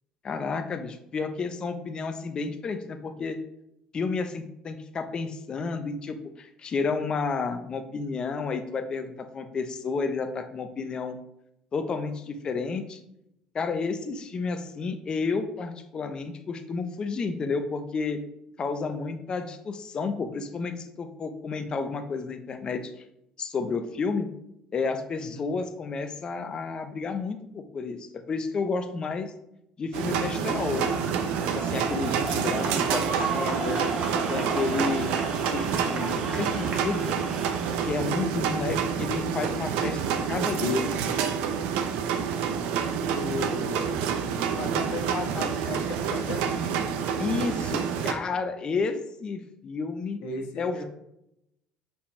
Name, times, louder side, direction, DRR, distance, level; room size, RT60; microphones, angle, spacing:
voice 1, 0.2-3.4 3.9-11.2 11.7-13.0 13.5-18.2 18.6-22.9 23.4-24.3 24.7-29.3 29.8-31.0 31.5-33.9 34.3-35.1 35.5-37.2 37.8-40.9 47.2-50.2 50.6-50.8, left 4 dB, 40° left, 7 dB, 0.8 m, -31 dB
voice 2, 25.2-25.5 32.0-32.4 43.0-43.9 44.5-46.8 50.2-50.8, left 3 dB, 70° left, 1 dB, 1.5 m, -36 dB
sound 1, 29.9-48.1, right 7 dB, 80° right, 0.7 m, -28 dB
sound 2, 30.6-38.0, right 4 dB, 60° right, 1.5 m, -34 dB
5.6 x 4.4 x 4.4 m, 0.81 s
supercardioid pair, 90°, 2 cm